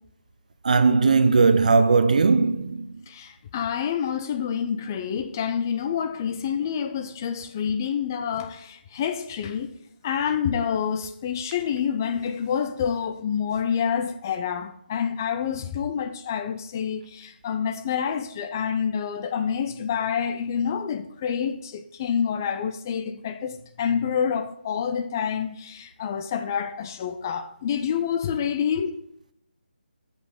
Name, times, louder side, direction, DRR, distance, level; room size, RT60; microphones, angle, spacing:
voice 1, 0.6-2.9, right 4 dB, 45° right, 0.5 m, -18 dB
voice 2, 3.1-9.7 10.0-29.0, left 7 dB, 20° left, 0.3 m, -27 dB
7.6 x 5.5 x 5.3 m
figure-of-eight pair, 150°, 6 cm